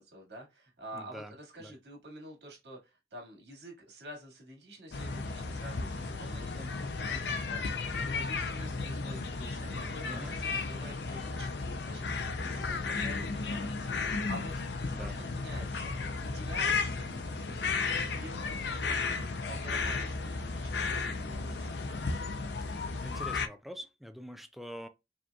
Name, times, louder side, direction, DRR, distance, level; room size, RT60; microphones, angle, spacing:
voice 1, 0.0-12.1 12.4-14.5 14.8-15.9 16.2-22.1, right 1 dB, 70° right, 2.0 m, -49 dB
voice 2, 0.9-1.3 1.6-1.7 10.0-10.3 14.9-15.2 22.7-24.9, equal, ahead, 0.3 m, -45 dB
sound 1, 4.9-23.5, left 4 dB, 70° left, 0.5 m, -34 dB
5.0 x 2.9 x 2.3 m
head